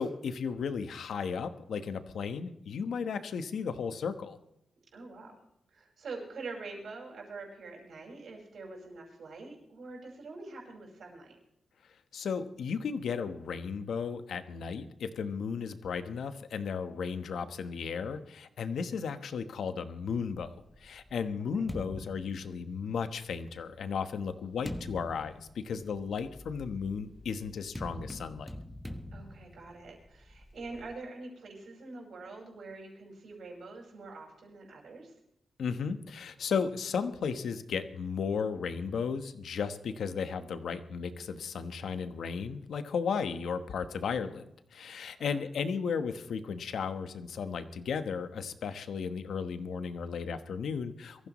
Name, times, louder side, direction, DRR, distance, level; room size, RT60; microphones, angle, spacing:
voice 1, 0.0-4.4 12.1-20.5 20.8-28.5 35.6-51.3, left 6 dB, 85° left, 10 dB, 1.2 m, -35 dB
voice 2, 4.9-5.4 5.7-11.4 21.5-21.7 29.1-35.1 45.2-45.4, right 3 dB, 75° right, 1 dB, 5.5 m, -45 dB
sound 1, 20.4-23.2 23.9-30.9, left 1 dB, 5° left, 1.2 m, -45 dB
23.0 x 15.0 x 3.1 m, 0.79 s
wide cardioid pair, 120°, 0 cm